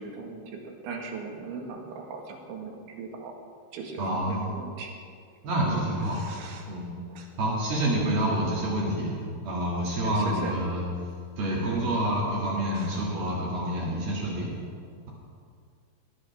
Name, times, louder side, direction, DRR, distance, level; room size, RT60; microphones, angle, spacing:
voice 1, 0.0-3.4 3.7-4.9 6.1-6.7 7.1-7.3 10.0-10.7 12.7-13.0, right 4 dB, 75° right, 1 dB, 4.1 m, -39 dB
voice 2, 4.0-4.4 5.4-6.3 6.7-6.9 7.4-9.2 9.4-10.8 11.4-14.5, right 1 dB, 55° right, -5 dB, 4.0 m, -27 dB
20.0 x 19.5 x 3.6 m, 2.2 s
omnidirectional pair, 5.6 m